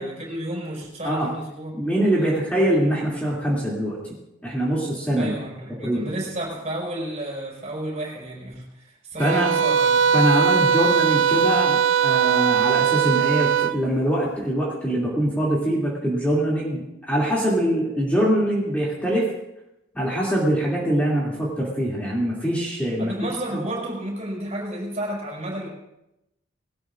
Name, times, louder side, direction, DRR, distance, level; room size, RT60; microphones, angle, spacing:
voice 1, 0.0-1.7 2.2-2.5 5.1-10.1 23.0-25.7, right 1 dB, 35° right, -2 dB, 5.5 m, -32 dB
voice 2, 1.7-4.0 4.4-5.3 5.8-6.1 9.2-9.5 10.1-19.3 19.9-23.1 23.5-23.6, right 1 dB, 5° left, -6 dB, 2.7 m, -23 dB
sound 1, 9.2-13.8, right 7 dB, 65° right, 0.4 m, -20 dB
21.0 x 18.0 x 2.5 m, 0.89 s
head